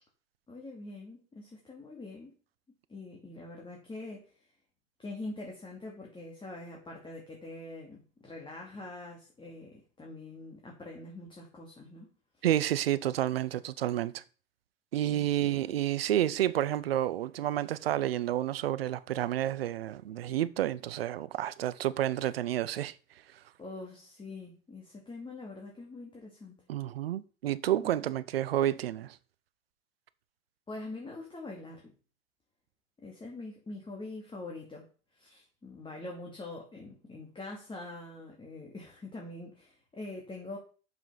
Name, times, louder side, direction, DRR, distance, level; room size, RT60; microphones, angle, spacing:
voice 1, 0.5-2.3 2.9-4.3 5.0-12.1 12.4-12.5 15.1-15.6 23.6-26.6 27.8-28.0 30.7-31.9 33.0-34.9 35.1-40.6, left 2 dB, 15° left, 2.6 m, -44 dB
voice 2, 12.4-14.2 14.9-22.9 26.7-29.2, right 12 dB, 90° right, 0.7 m, -30 dB
7.1 x 5.9 x 5.7 m
hypercardioid pair, 95°, 29 cm